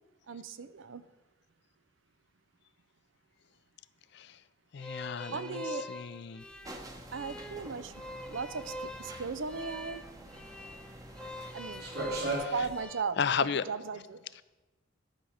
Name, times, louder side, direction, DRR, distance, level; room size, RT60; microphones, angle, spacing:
voice 1, 0.3-1.0 5.3-5.9 7.1-7.9 8.3-10.0 11.5-11.9 12.5-14.2, right 4 dB, 80° right, 13 dB, 0.6 m, -37 dB
voice 2, 4.7-6.4 12.3-12.7 13.2-13.6 14.4-14.5, left 7 dB, 60° left, 16 dB, 0.4 m, -34 dB
sound 1, 4.8-13.0, equal, 5° left, 0.5 m, -44 dB
sound 2, 6.4-12.8, right 2 dB, 55° right, 2.1 m, -40 dB
sound 3, 6.6-12.1, right 1 dB, 20° right, 0.9 m, -49 dB
11.5 x 5.1 x 6.3 m, 1.1 s
head